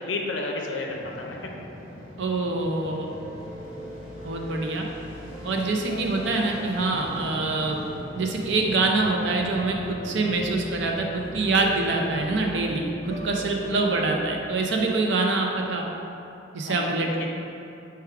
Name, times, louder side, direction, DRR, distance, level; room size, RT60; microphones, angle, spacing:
voice 1, 0.0-1.4 13.6-13.9 16.7-17.3, left 3 dB, 80° left, 0 dB, 0.4 m, -32 dB
Fixed-wing aircraft airplane, 0.9-16.1, left 1 dB, 85° right, 1.2 m, -43 dB
voice 2, 2.2-3.1 4.2-4.9 5.4-7.8 8.1-15.9 16.5-17.3, right 3 dB, 70° right, 1 dB, 0.5 m, -25 dB
sound 1, 3.1-15.2, right 1 dB, 40° left, 0.7 m, -41 dB
4.6 x 2.3 x 4.7 m, 2.9 s
head